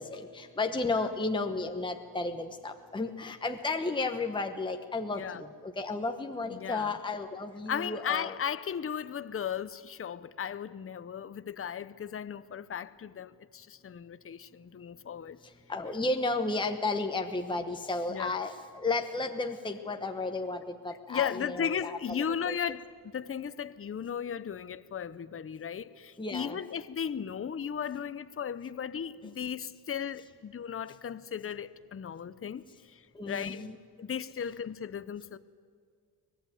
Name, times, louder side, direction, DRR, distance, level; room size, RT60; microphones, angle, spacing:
voice 1, 0.0-5.5 5.8-8.3 15.7-22.2 22.4-22.6 26.2-26.6 33.2-33.7, left 3 dB, 10° left, 1.1 m, -33 dB
voice 2, 5.1-5.4 6.5-7.0 7.7-15.4 15.9-16.0 18.1-18.4 20.9-33.7 34.0-35.4, left 8 dB, 30° left, 0.7 m, -36 dB
24.0 x 19.0 x 9.3 m
cardioid pair, 125°, 45 cm